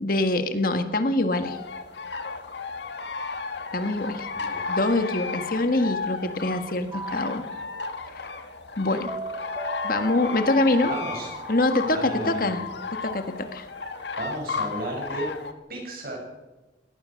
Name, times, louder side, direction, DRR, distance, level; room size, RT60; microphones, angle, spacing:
voice 1, 0.0-1.6 3.7-4.3 4.7-7.4 8.8-9.1 9.8-10.9 11.5-12.6 13.0-13.7, left 2 dB, 55° left, 8 dB, 1.6 m, -24 dB
sound 1, 1.4-15.5, left 4 dB, 80° left, 1.6 m, -34 dB
voice 2, 4.3-4.7 5.8-5.9 10.9-11.3 11.8-12.6 14.2-15.3 15.7-16.2, right 1 dB, 55° right, 0 dB, 7.9 m, -34 dB
sound 2, 6.9-8.0 9.1-12.3, right 2 dB, 20° right, 1.5 m, -38 dB
22.0 x 18.0 x 6.6 m, 1.1 s
head